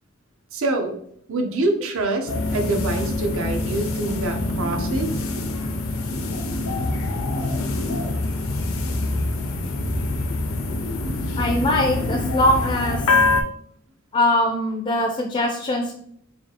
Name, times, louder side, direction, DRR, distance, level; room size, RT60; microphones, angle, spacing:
voice 1, 0.5-0.9 1.3-5.1, right 2 dB, 70° right, 4 dB, 0.6 m, -25 dB
sound 1, 2.3-13.4, left 2 dB, 80° left, 0.5 m, -25 dB
voice 2, 11.4-13.0 14.1-15.9, left 1 dB, 25° left, 3 dB, 0.3 m, -21 dB
4.2 x 2.3 x 2.8 m, 0.66 s
head